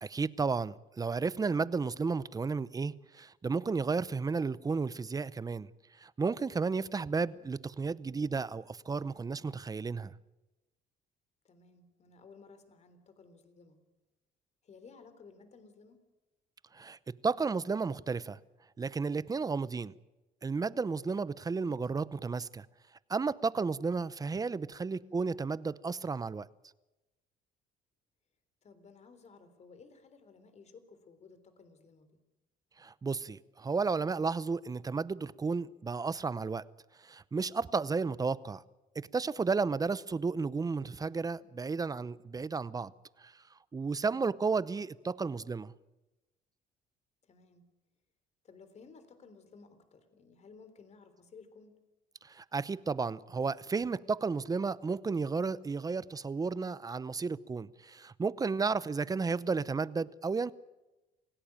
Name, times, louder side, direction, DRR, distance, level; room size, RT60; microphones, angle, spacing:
voice 1, 0.0-5.7 6.0-10.1 16.7-18.4 18.8-19.9 20.4-22.7 23.1-26.5 32.8-36.6 37.0-38.6 39.0-42.9 43.2-43.3 43.7-45.7 52.2-60.5, right 4 dB, 20° right, 0.8 m, -33 dB
voice 2, 11.4-13.8 14.6-16.1 24.9-25.3 28.6-32.2 44.0-44.3 47.2-47.7 48.4-51.8, left 4 dB, 40° left, 3.7 m, -57 dB
27.0 x 17.0 x 8.8 m
cardioid pair, 110°, 17 cm